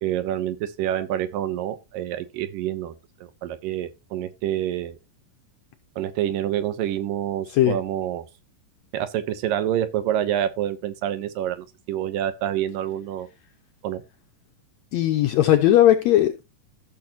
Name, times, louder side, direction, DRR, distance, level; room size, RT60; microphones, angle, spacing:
voice 1, 0.0-2.9 3.2-5.0 6.0-8.3 8.9-13.3 13.8-14.0, right 11 dB, 85° right, 2.6 m, -27 dB
voice 2, 14.9-16.4, left 12 dB, 80° left, 1.6 m, -18 dB
15.0 x 6.2 x 2.9 m
omnidirectional pair, 3.8 m